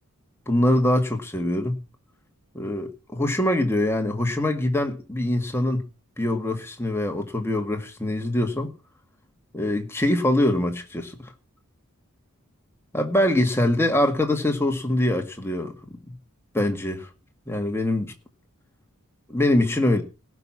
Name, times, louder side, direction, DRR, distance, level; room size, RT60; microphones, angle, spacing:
voice 1, 0.5-1.8 2.5-5.8 6.2-8.7 9.5-11.3 12.9-15.7 16.1-16.2 16.5-17.1 17.5-18.1 19.3-20.0, left 1 dB, 10° left, 1.9 m, -23 dB
17.5 x 6.1 x 7.4 m
head